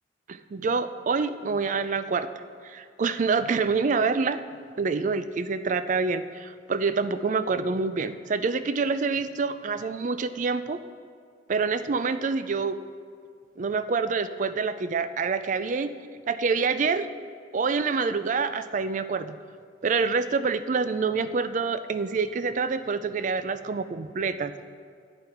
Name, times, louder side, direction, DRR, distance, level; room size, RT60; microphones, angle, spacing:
voice 1, 0.3-2.3 2.6-4.4 4.8-10.8 11.5-12.8 13.6-15.9 16.3-17.1 17.5-19.4 19.8-24.5, right 4 dB, 45° right, 12 dB, 0.4 m, -26 dB
11.5 x 8.9 x 4.5 m, 2.1 s
head